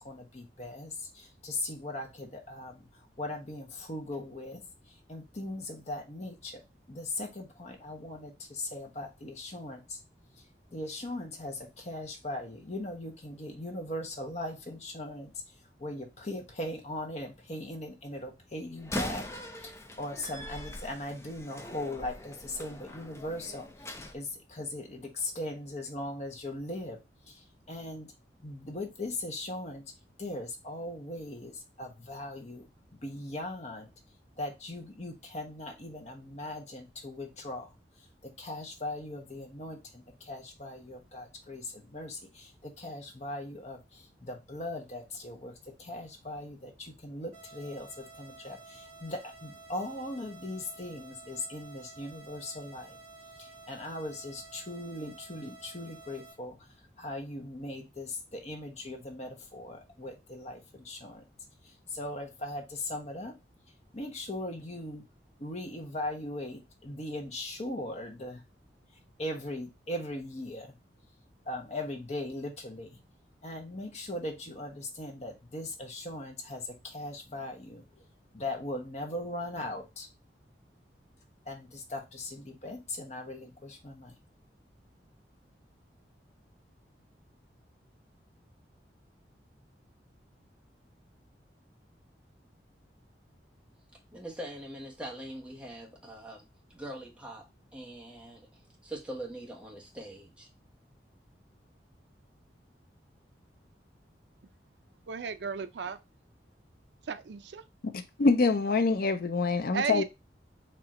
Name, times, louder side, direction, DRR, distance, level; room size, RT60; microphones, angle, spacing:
voice 1, 0.0-6.6 6.9-10.0 10.7-15.3 15.8-19.2 19.6-27.0 27.3-28.1 28.4-29.8 30.2-32.7 33.0-33.9 34.4-37.7 38.0-53.0 53.4-56.7 57.0-61.2 61.6-63.3 63.9-65.0 65.4-68.4 69.2-70.7 71.4-73.0 73.4-78.0 78.3-80.1 81.4-84.1, left 1 dB, 40° left, 1.2 m, -39 dB
Slam, 18.8-24.2, left 1 dB, 15° left, 0.7 m, -41 dB
sound 1, 47.3-56.3, right 3 dB, 35° right, 2.7 m, -51 dB
voice 2, 94.1-96.4 96.7-97.5 97.7-98.5 98.8-100.5, right 1 dB, 5° right, 1.3 m, -42 dB
voice 3, 105.1-106.0 107.1-107.6 109.7-110.0, right 5 dB, 80° right, 0.5 m, -34 dB
voice 4, 108.2-110.0, left 3 dB, 55° left, 0.5 m, -25 dB
4.5 x 3.0 x 3.7 m
head